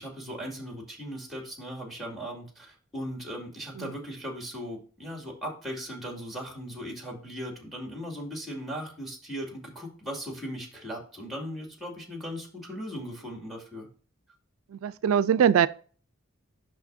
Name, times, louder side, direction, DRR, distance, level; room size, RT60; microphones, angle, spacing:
voice 1, 0.0-13.9, equal, ahead, 2.3 m, -38 dB
voice 2, 14.7-15.7, right 8 dB, 80° right, 0.3 m, -22 dB
8.2 x 6.3 x 2.6 m
head